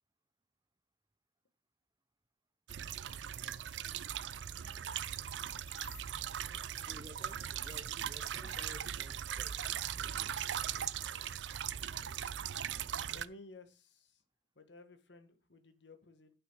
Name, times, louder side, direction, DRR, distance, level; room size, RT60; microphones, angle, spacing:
sound 1, 2.7-13.3, right 9 dB, 80° right, 0.5 m, -39 dB
sound 2, 5.3-6.1 6.5-7.2 7.5-9.0 9.4-9.7 9.9-10.1, left 6 dB, 45° left, 3.5 m, -58 dB
voice 1, 6.8-10.4, equal, 20° right, 0.8 m, -55 dB
voice 2, 13.0-14.2 14.5-16.3, left 2 dB, 75° left, 1.6 m, -55 dB
11.0 x 6.1 x 4.7 m
head